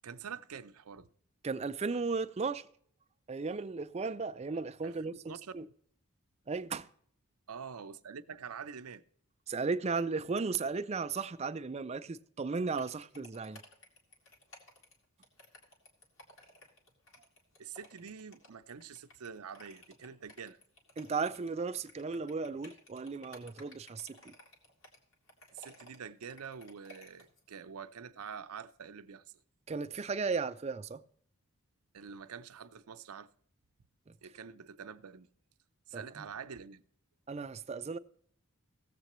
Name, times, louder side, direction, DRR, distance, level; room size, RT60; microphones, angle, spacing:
voice 1, 0.0-1.1 4.8-5.6 7.5-9.0 17.6-20.6 25.5-29.2 31.9-33.3 34.2-35.3 35.9-36.8, right 6 dB, 85° right, 0.6 m, -46 dB
voice 2, 1.4-2.6 3.3-5.6 6.5-6.9 9.5-13.6 21.0-24.3 29.7-31.0 35.9-36.0 37.3-38.0, right 4 dB, 30° right, 0.4 m, -35 dB
sound 1, 12.8-27.4, left 1 dB, 60° left, 2.3 m, -56 dB
17.0 x 7.5 x 3.0 m
head